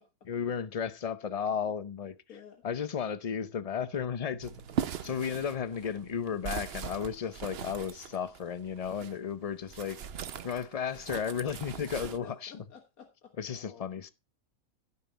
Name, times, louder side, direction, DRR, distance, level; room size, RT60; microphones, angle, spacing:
voice 1, 0.3-2.2 2.6-4.5 5.0-10.0 10.4-12.5 13.4-14.1, left 7 dB, 45° left, 0.5 m, -34 dB
voice 2, 2.3-2.6 11.8-13.9, left 5 dB, 90° left, 1.9 m, -51 dB
sound 1, 3.4-8.2, right 5 dB, 80° right, 1.6 m, -54 dB
sound 2, 4.4-9.2 9.7-12.2, right 8 dB, 55° right, 0.8 m, -40 dB
15.5 x 5.6 x 4.1 m
omnidirectional pair, 1.5 m